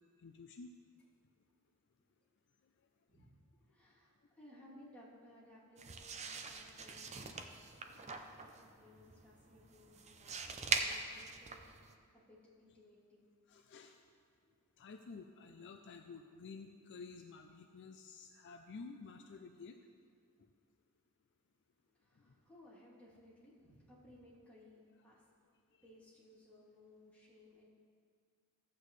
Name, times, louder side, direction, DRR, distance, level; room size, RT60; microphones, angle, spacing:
voice 1, 0.2-0.7 7.9-8.0 13.5-14.0 14.8-19.8 20.4-20.5 22.3-22.4 25.7-25.8, left 4 dB, 55° left, 6 dB, 0.4 m, -52 dB
voice 2, 3.1-7.5 7.8-8.1 8.4-11.6 12.1-13.3 14.4-14.5 22.0-25.3 25.8-27.7, left 1 dB, 5° left, -10 dB, 2.9 m, -61 dB
sound 1, 5.8-11.9, right 4 dB, 30° right, 0.6 m, -42 dB
14.5 x 8.2 x 3.2 m, 2.1 s
head